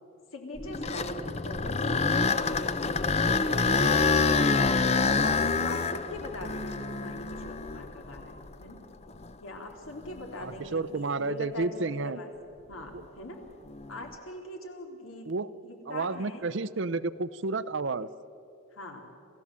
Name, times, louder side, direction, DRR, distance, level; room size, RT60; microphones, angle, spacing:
voice 1, 0.3-2.5 3.3-4.3 5.6-8.8 9.4-12.3 12.7-13.4 13.9-16.4 18.7-19.0, left 1 dB, 80° left, 3 dB, 3.3 m, -42 dB
sound 1, 0.6-8.6 9.2-9.3 10.0-10.2 13.7-14.1, left 4 dB, 30° left, 0.6 m, -27 dB
voice 2, 10.4-12.2 15.3-15.5 15.9-18.1, right 3 dB, 60° right, 16 dB, 0.6 m, -31 dB
28.0 x 15.5 x 7.5 m, 2.8 s
head